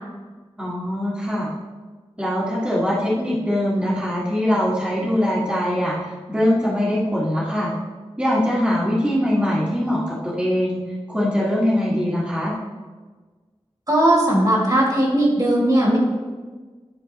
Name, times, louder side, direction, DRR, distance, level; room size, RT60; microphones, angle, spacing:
voice 1, 0.6-1.5 2.2-7.7 8.2-10.8 11.1-12.5, equal, 10° right, -8 dB, 1.6 m, -22 dB
voice 2, 13.9-16.0, right 1 dB, 35° right, -3 dB, 2.2 m, -18 dB
10.5 x 4.5 x 2.9 m, 1.3 s
wide cardioid pair, 65°, 11 cm